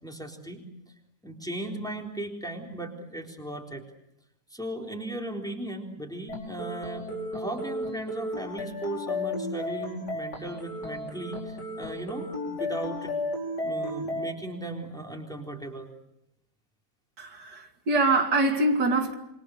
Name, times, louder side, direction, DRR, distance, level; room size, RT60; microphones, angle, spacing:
voice 1, 0.0-0.6 1.2-3.8 4.5-7.1 7.3-13.1 13.6-15.9, right 1 dB, ahead, 3.9 m, -37 dB
sound 1, 6.3-14.3, left 1 dB, 80° left, 5.5 m, -34 dB
voice 2, 17.2-19.1, right 2 dB, 80° right, 3.1 m, -24 dB
27.5 x 25.5 x 6.5 m
omnidirectional pair, 1.8 m